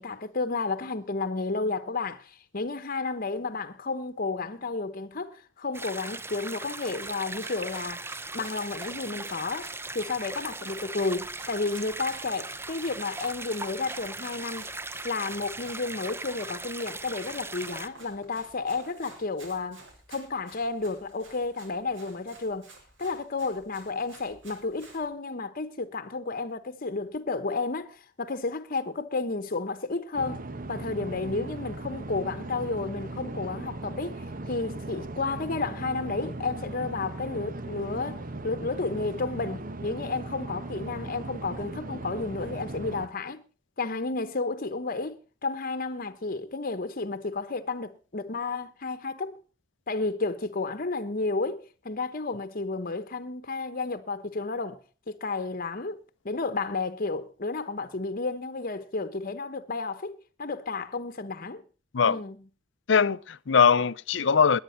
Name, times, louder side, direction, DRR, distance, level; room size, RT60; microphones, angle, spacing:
voice 1, 0.0-8.0 8.3-14.7 15.0-19.8 20.1-22.7 23.0-43.4 43.8-49.4 49.9-54.8 55.1-61.6 62.0-62.4, left 3 dB, 50° left, 1.0 m, -32 dB
sound 1, 5.7-17.9, right 2 dB, 15° right, 0.8 m, -38 dB
Run, 6.8-25.0, right 3 dB, 80° right, 7.4 m, -52 dB
sound 2, 30.2-43.1, right 2 dB, 45° right, 1.0 m, -38 dB
voice 2, 62.9-64.6, left 6 dB, 70° left, 0.6 m, -21 dB
20.0 x 9.0 x 5.7 m
head